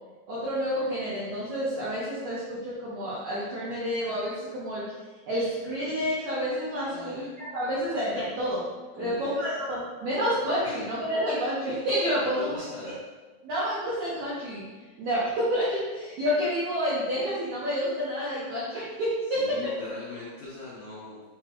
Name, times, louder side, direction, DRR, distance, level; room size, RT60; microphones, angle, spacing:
voice 1, 0.3-4.8 5.3-8.6 9.0-12.9 13.4-14.6 15.0-19.4, equal, 85° right, -9 dB, 1.6 m, -29 dB
voice 2, 6.9-7.3 9.0-9.4 10.6-10.8 12.2-13.0 19.3-21.2, left 3 dB, 90° left, -6 dB, 1.7 m, -40 dB
6.5 x 2.9 x 2.4 m, 1.3 s
omnidirectional pair, 4.6 m